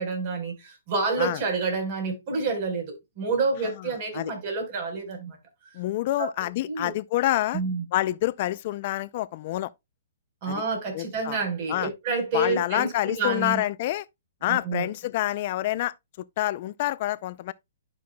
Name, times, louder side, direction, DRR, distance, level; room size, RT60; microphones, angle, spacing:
voice 1, 0.0-5.4 6.2-6.3 6.7-6.9 7.5-7.8 10.4-13.6 14.5-14.9, right 3 dB, 45° right, 4.3 m, -28 dB
voice 2, 3.8-4.3 5.7-7.6 7.9-9.7 10.5-10.6 10.9-11.4 11.7-11.9 12.3-14.1 14.4-17.5, left 15 dB, 45° left, 0.4 m, -27 dB
11.5 x 6.1 x 2.2 m
hypercardioid pair, 150°, 0 cm